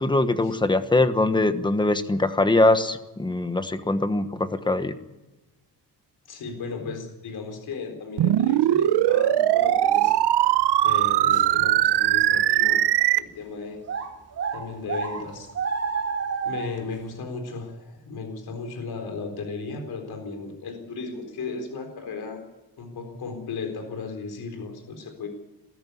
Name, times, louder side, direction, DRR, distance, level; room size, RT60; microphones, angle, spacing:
voice 1, 0.0-5.0, left 2 dB, 10° left, 10 dB, 1.2 m, -22 dB
voice 2, 6.3-10.1 10.8-12.8 13.1-13.8 14.5-15.5 16.5-22.4 22.8-25.3, left 4 dB, 60° left, 4 dB, 4.3 m, -35 dB
sound 1, 8.2-13.2, right 13 dB, 70° right, 0.9 m, -20 dB
sound 2, 10.0-10.1 10.6-10.7 11.3-11.5 12.1-12.2 12.9-13.0 13.8-16.8, right 5 dB, 35° right, 2.9 m, -30 dB
20.5 x 13.5 x 9.7 m, 1.1 s
cardioid pair, 150°, 41 cm